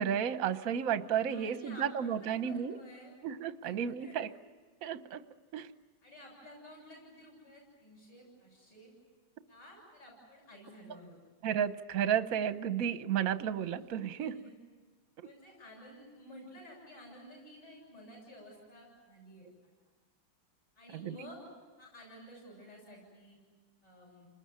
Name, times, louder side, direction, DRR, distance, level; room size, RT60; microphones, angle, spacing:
voice 1, 0.0-2.7 3.2-4.3 4.8-5.2 5.5-5.7 11.4-14.3 21.0-21.1, right 9 dB, 50° right, 11 dB, 1.1 m, -32 dB
voice 2, 1.3-3.1 3.6-3.7 4.0-4.3 6.0-8.9 9.5-11.2 13.7-14.5 15.2-19.5 20.8-21.5 21.8-23.4 23.8-24.3, left 1 dB, 55° left, -1 dB, 8.9 m, -53 dB
29.5 x 21.0 x 9.6 m, 1.4 s
omnidirectional pair, 2.3 m